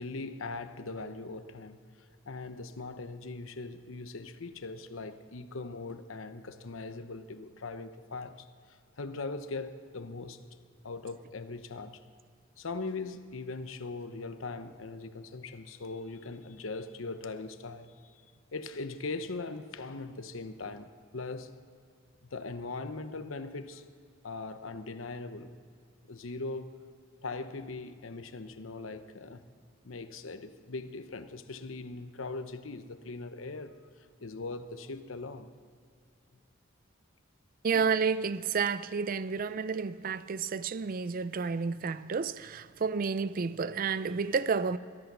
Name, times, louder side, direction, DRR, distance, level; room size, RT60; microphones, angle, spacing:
voice 1, 0.0-10.4 10.8-12.0 12.6-18.2 18.5-21.5 22.2-23.9 24.2-25.6 26.1-26.7 27.2-29.5 29.8-35.5, left 3 dB, 90° left, 0.8 m, -40 dB
voice 2, 37.6-44.8, right 5 dB, 45° right, 0.4 m, -30 dB
21.5 x 11.0 x 6.1 m
head